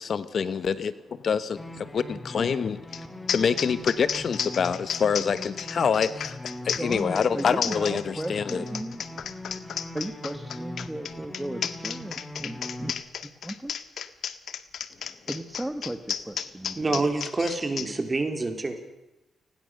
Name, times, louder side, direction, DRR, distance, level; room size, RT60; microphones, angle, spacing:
voice 1, 0.0-8.6 17.4-17.5, left 6 dB, 55° left, 15 dB, 1.2 m, -26 dB
sound 1, 1.6-12.9, left 1 dB, 15° left, 2.8 m, -40 dB
sound 2, 2.9-3.0 3.3-17.9, left 8 dB, 70° left, 1.5 m, -33 dB
voice 2, 6.8-9.0 9.9-12.9 13.4-13.7 15.3-17.0 17.8-17.9, right 1 dB, 10° right, 9 dB, 1.6 m, -35 dB
voice 3, 16.8-18.8, right 3 dB, 25° right, 6 dB, 4.1 m, -27 dB
29.5 x 20.5 x 6.7 m, 0.96 s
cardioid pair, 120°, 0 cm